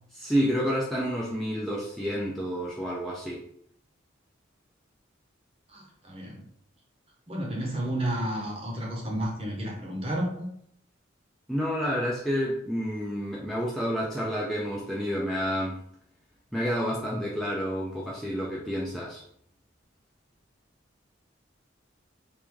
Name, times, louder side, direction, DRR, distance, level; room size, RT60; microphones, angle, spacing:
voice 1, 0.2-3.4 11.5-15.8 16.5-19.2, equal, ahead, -5 dB, 0.3 m, -29 dB
voice 2, 5.7-6.5 7.3-10.5, right 1 dB, 30° right, -1 dB, 0.8 m, -31 dB
3.4 x 2.5 x 3.0 m, 0.69 s
head